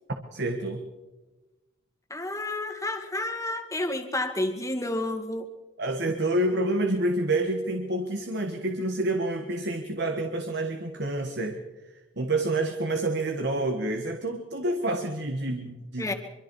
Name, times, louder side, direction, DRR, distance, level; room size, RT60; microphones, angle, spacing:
voice 1, 0.3-0.8 5.8-11.6 11.9-16.1, right 1 dB, 50° right, 5 dB, 1.7 m, -28 dB
voice 2, 2.1-5.5 16.0-16.1, left 1 dB, 15° left, 5 dB, 2.1 m, -30 dB
25.0 x 24.5 x 4.8 m, 1.2 s
head